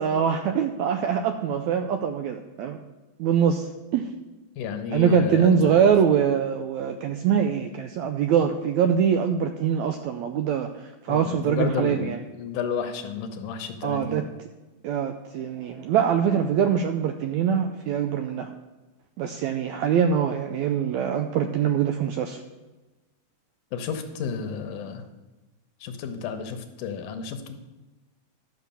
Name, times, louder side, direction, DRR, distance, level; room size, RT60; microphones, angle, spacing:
voice 1, 0.0-2.8 3.2-4.1 4.9-12.2 13.8-14.2 14.8-18.5 19.2-22.4, right 7 dB, 85° right, 7 dB, 1.6 m, -23 dB
voice 2, 4.6-5.9 11.1-14.2 23.7-25.0 25.8-27.5, left 6 dB, 80° left, 7 dB, 2.4 m, -32 dB
12.0 x 5.9 x 6.9 m, 1.2 s
omnidirectional pair, 3.8 m